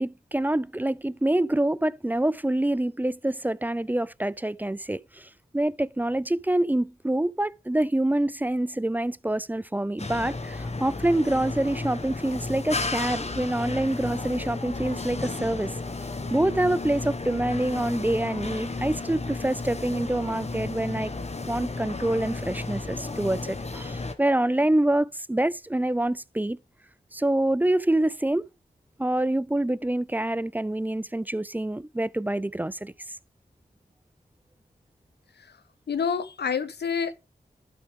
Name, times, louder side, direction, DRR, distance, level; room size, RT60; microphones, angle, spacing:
voice 1, 0.0-15.7 16.3-21.1 21.5-26.6 27.1-28.5 29.0-32.9, right 1 dB, 10° right, 0.3 m, -26 dB
sound 1, 10.0-24.1, left 3 dB, 40° left, 1.0 m, -33 dB
voice 2, 35.9-37.2, left 6 dB, 75° left, 0.7 m, -28 dB
12.0 x 4.8 x 3.5 m
cardioid pair, 45°, 17 cm